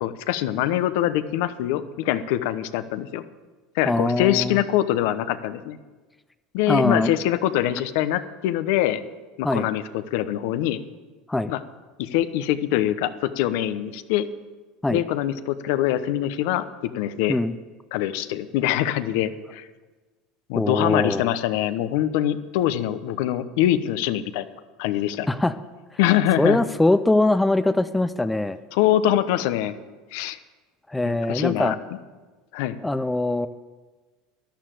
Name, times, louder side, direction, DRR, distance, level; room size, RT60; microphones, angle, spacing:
voice 1, 0.0-3.2 3.7-5.8 6.5-9.0 9.4-10.8 11.5-11.6 12.0-14.3 14.9-17.4 17.9-19.7 20.5-24.5 24.8-25.3 26.0-26.6 28.7-29.7 30.1-30.4 31.0-31.7 32.5-32.8, left 12 dB, 75° left, 12 dB, 0.9 m, -24 dB
voice 2, 3.9-4.6 6.7-7.1 9.4-9.7 11.3-11.5 14.8-15.0 17.3-17.5 20.5-21.2 25.3-25.6 26.4-28.6 30.9-31.7 32.8-33.5, left 2 dB, 10° left, 12 dB, 0.6 m, -22 dB
11.5 x 11.5 x 7.7 m, 1.3 s
supercardioid pair, 110°, 0 cm